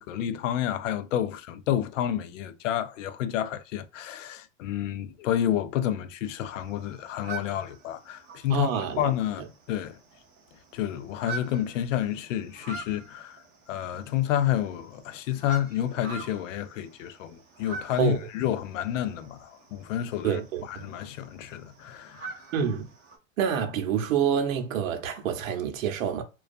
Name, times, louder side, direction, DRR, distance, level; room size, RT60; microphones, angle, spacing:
voice 1, 0.0-10.0 10.7-13.4 13.7-22.3, left 11 dB, 70° left, 0.5 m, -30 dB
sound 1, 6.2-23.2, right 4 dB, 20° right, 0.6 m, -45 dB
voice 2, 8.5-9.1 18.0-18.2 20.2-20.8 22.5-22.9 23.4-26.2, right 8 dB, 75° right, 0.8 m, -27 dB
2.3 x 2.2 x 2.5 m
supercardioid pair, 150°, 40 cm